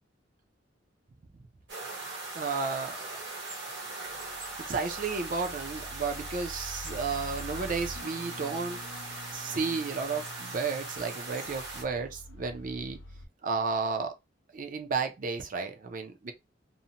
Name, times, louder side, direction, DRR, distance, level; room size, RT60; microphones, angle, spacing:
sound 1, 1.7-11.8, right 3 dB, 65° right, 1.0 m, -40 dB
voice 1, 2.3-3.1 4.7-8.8 9.3-13.0 13.4-14.1 14.5-16.3, right 4 dB, 45° right, 0.5 m, -32 dB
sound 2, 3.8-13.2, left 1 dB, 80° left, 0.4 m, -46 dB
2.7 x 2.1 x 2.8 m
head